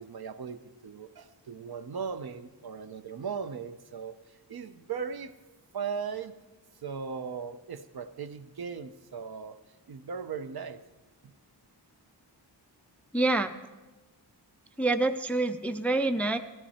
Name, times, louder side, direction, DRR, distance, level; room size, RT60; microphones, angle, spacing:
voice 1, 0.0-5.3 5.7-6.4 6.8-9.6 9.9-10.8 11.2-11.3, right 6 dB, 60° right, 11 dB, 0.7 m, -38 dB
voice 2, 13.1-13.5 14.8-16.4, right 2 dB, 5° left, 10 dB, 0.4 m, -26 dB
14.0 x 13.0 x 4.2 m, 1.2 s
wide cardioid pair, 105°, 43 cm